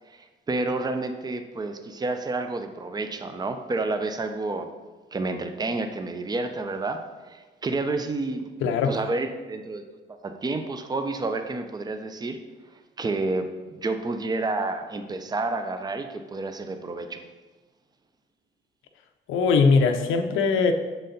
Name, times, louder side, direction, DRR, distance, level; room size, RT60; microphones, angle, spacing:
voice 1, 0.1-4.7 5.1-7.0 7.3-8.5 8.8-9.8 10.2-12.4 13.0-17.2, right 3 dB, 20° right, 7 dB, 0.5 m, -29 dB
voice 2, 8.6-8.9 19.3-20.7, left 5 dB, 85° left, 7 dB, 0.6 m, -20 dB
6.6 x 4.0 x 3.9 m, 1.3 s
cardioid pair, 90°, 20 cm